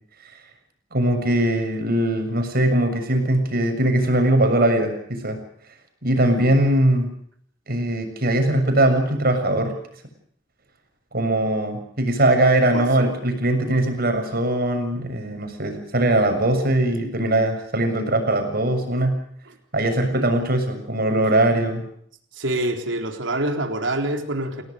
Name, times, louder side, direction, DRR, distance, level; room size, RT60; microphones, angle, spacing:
voice 1, 0.9-5.4 6.0-7.1 7.7-9.7 11.1-19.2 19.7-21.8, right 1 dB, 55° right, 6 dB, 7.1 m, -21 dB
voice 2, 12.7-13.1 20.1-20.3 22.3-24.6, right 1 dB, 75° right, 5 dB, 4.0 m, -26 dB
29.5 x 18.5 x 6.6 m, 0.65 s
head